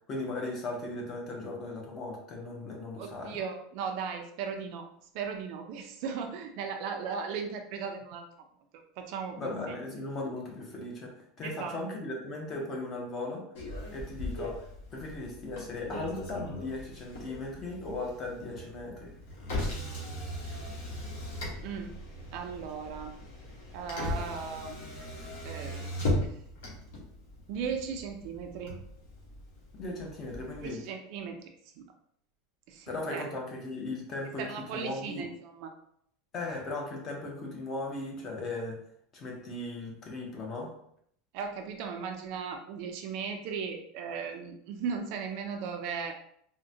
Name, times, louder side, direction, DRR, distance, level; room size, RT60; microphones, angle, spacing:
voice 1, 0.1-3.4 9.4-13.5 13.9-14.6 14.9-19.2 29.7-30.9 32.9-35.3 36.3-38.8 39.1-40.7, left 2 dB, 25° left, 0 dB, 0.6 m, -37 dB
voice 2, 3.0-4.9 5.1-8.3 9.0-9.8 11.4-11.8 21.6-21.9 22.3-23.2 23.7-24.8 25.4-26.2 27.5-28.8 30.6-31.5 31.8-31.9 32.7-33.3 34.4-35.7 41.3-46.2, right 6 dB, 45° right, 4 dB, 0.4 m, -37 dB
Motor vehicle (road), 13.5-30.7, left 1 dB, 75° left, 1.1 m, -38 dB
3.6 x 2.1 x 2.6 m, 0.68 s
supercardioid pair, 175°, 0 cm